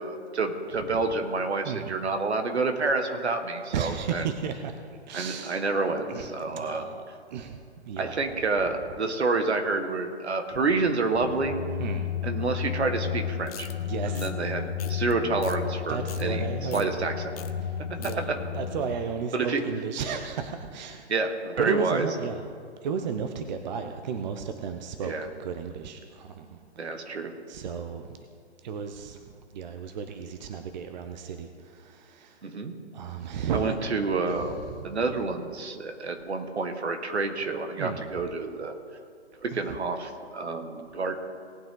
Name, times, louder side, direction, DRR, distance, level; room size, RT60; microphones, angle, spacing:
voice 1, 0.0-4.2 5.1-6.8 8.0-11.6 12.2-13.7 14.1-16.4 16.7-17.1 19.3-19.6 21.1-22.1 25.0-25.3 26.8-27.3 32.4-32.8 33.5-38.8 39.4-41.1, right 3 dB, 70° right, 5 dB, 1.8 m, -28 dB
voice 2, 3.7-5.7 6.1-8.2 11.8-12.1 13.8-14.3 15.9-16.9 17.6-21.1 21.6-22.4 22.8-27.1 27.5-28.2 28.6-32.4 32.9-33.8 34.3-35.1 37.8-38.1 39.5-39.8, right 6 dB, 40° right, 7 dB, 0.8 m, -34 dB
sound 1, 11.1-19.0, left 8 dB, 50° left, 1.8 m, -33 dB
sound 2, 13.5-13.7 14.1-14.3 14.8-15.1 15.4-15.6 15.9-16.2 16.7-16.9 17.3-17.5 17.8-18.2, left 12 dB, 35° left, 0.8 m, -43 dB
18.5 x 8.9 x 3.9 m, 2.1 s
figure-of-eight pair, 130°, 34 cm